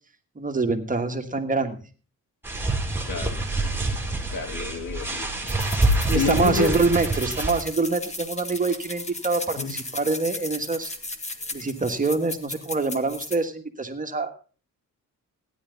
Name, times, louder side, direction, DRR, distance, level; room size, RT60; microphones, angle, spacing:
voice 1, 0.3-1.8 6.1-10.9 11.5-14.3, right 3 dB, 25° right, 1.5 m, -25 dB
sound 1, 2.4-7.6, right 2 dB, 5° right, 2.2 m, -26 dB
voice 2, 4.3-5.3 6.1-6.7 9.6-9.7, left 6 dB, 90° left, 1.8 m, -28 dB
sound 2, 5.5-13.4, left 2 dB, 20° left, 1.3 m, -36 dB
15.5 x 10.5 x 3.9 m
wide cardioid pair, 145°, 32 cm